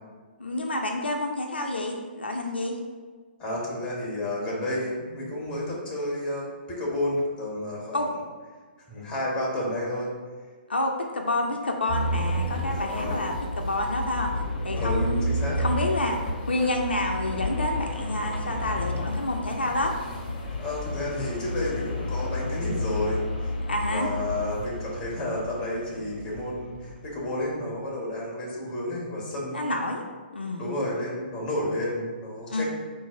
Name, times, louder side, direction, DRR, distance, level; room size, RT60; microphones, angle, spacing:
voice 1, 0.4-2.8 7.9-8.1 10.7-14.3 14.6-15.3 15.6-16.2 16.5-19.9 23.7-24.1 29.5-30.0 30.3-30.7 32.5-32.6, left 1 dB, 75° left, 2 dB, 0.5 m, -28 dB
voice 2, 3.4-8.0 8.9-10.1 12.5-13.2 14.7-15.6 20.6-23.5 23.9-29.7 30.6-32.6, left 1 dB, 15° left, -4 dB, 1.3 m, -31 dB
sound 1, 11.9-27.0, left 1 dB, 45° left, 0.8 m, -31 dB
3.9 x 2.5 x 4.7 m, 1.5 s
figure-of-eight pair, 125°, 6 cm